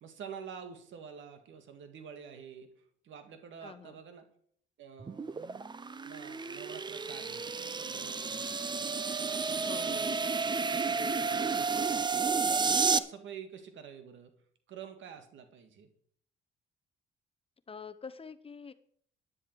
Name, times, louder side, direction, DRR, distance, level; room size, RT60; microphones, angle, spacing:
voice 1, 0.0-2.7 3.0-4.3 4.8-5.8 6.0-8.9 9.3-10.2 10.7-12.0 12.5-14.3 14.7-15.9, right 7 dB, 75° right, 8 dB, 1.8 m, -48 dB
voice 2, 3.6-4.0 9.6-10.1 17.7-18.7, left 5 dB, 30° left, 12 dB, 0.8 m, -46 dB
sound 1, 5.0-13.0, right 4 dB, 20° right, 0.6 m, -31 dB
12.5 x 9.9 x 4.6 m, 0.63 s
cardioid pair, 90°, 20 cm